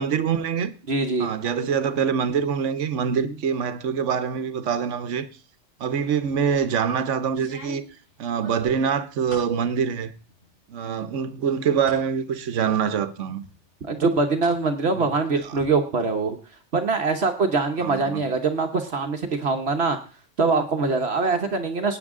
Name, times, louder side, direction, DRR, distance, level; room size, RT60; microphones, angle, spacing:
voice 1, 0.0-0.7 1.2-5.3 5.8-7.8 8.2-10.1 10.7-13.4 14.9-15.1 15.4-15.6 17.8-18.2, right 7 dB, 85° right, 1.2 m, -25 dB
voice 2, 0.9-1.3 13.9-16.4 16.7-20.0 20.4-22.0, right 4 dB, 60° right, 1.2 m, -23 dB
sound 1, 6.2-6.7 7.3-9.6 10.0-10.6 10.9-12.0 12.5-12.6 13.4-14.6 14.9-15.7, left 1 dB, 80° left, 5.9 m, -45 dB
17.0 x 9.0 x 3.7 m
omnidirectional pair, 1.2 m